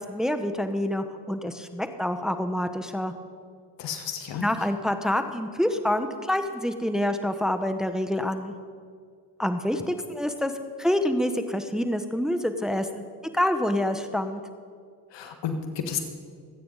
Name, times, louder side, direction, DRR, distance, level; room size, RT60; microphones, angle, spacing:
voice 1, 0.0-3.1 4.4-8.5 9.4-10.5 10.8-13.0 13.3-14.4, left 1 dB, ahead, 8 dB, 1.0 m, -27 dB
voice 2, 3.8-4.5 15.1-16.0, left 7 dB, 70° left, 6 dB, 1.7 m, -32 dB
25.5 x 9.1 x 4.0 m, 2.1 s
hypercardioid pair, 55°, 44 cm